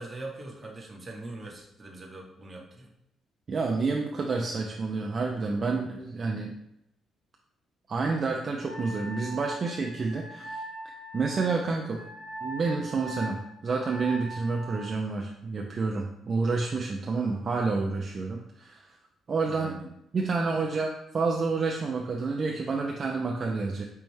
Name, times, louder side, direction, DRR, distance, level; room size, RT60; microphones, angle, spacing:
voice 1, 0.0-2.9 19.4-19.9, right 2 dB, 25° right, -1 dB, 0.9 m, -42 dB
voice 2, 3.5-6.5 7.9-10.6 11.1-12.0 12.4-18.8 19.3-19.7 20.1-23.8, right 4 dB, 45° right, 1 dB, 0.4 m, -29 dB
Wind instrument woodwind instrument, 8.7-15.0, right 2 dB, 75° left, 1.3 m, -41 dB
5.2 x 2.2 x 3.1 m, 0.81 s
cardioid pair, 90°, 0 cm